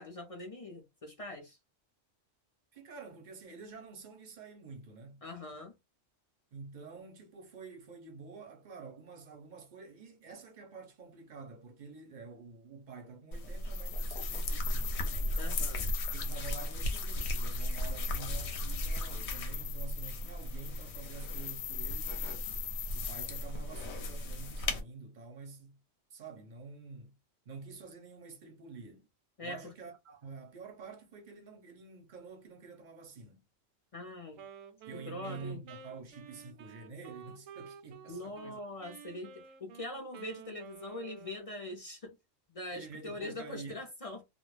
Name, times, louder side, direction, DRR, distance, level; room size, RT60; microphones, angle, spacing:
voice 1, 0.0-1.6 5.2-5.7 15.4-15.9 29.4-29.7 33.9-34.4 34.9-35.6 38.1-42.1 42.5-44.2, left 1 dB, 50° left, 0.4 m, -43 dB
voice 2, 2.7-5.2 6.5-15.0 15.8-22.5 22.9-25.8 26.1-27.2 27.5-29.1 29.4-33.4 34.9-38.6 42.7-43.9, right 4 dB, 50° right, 0.6 m, -48 dB
sound 1, 13.3-24.8, left 1 dB, 65° left, 0.8 m, -36 dB
sound 2, 13.6-23.5, left 10 dB, 90° left, 1.0 m, -43 dB
Wind instrument woodwind instrument, 34.3-38.5 38.8-41.7, right 7 dB, 85° right, 1.0 m, -51 dB
2.3 x 2.0 x 3.1 m
omnidirectional pair, 1.3 m